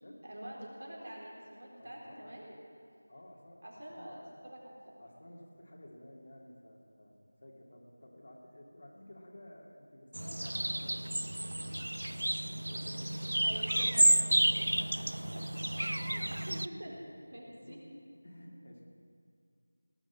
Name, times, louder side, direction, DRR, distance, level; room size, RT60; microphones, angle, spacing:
voice 1, 0.2-2.5 3.6-5.0 13.4-15.4 16.5-16.9 17.3-17.8, right 1 dB, 70° right, -3 dB, 4.0 m, -46 dB
voice 2, 1.7-2.6 3.1-4.4 5.0-7.1 7.4-11.1 12.1-13.4 15.1-17.0 17.4-17.8 18.2-18.9, left 1 dB, 50° left, -1 dB, 2.4 m, -53 dB
sound 1, 10.1-16.7, right 1 dB, 85° right, 0.4 m, -31 dB
18.0 x 6.3 x 8.2 m, 2.3 s
figure-of-eight pair, 175°, 0 cm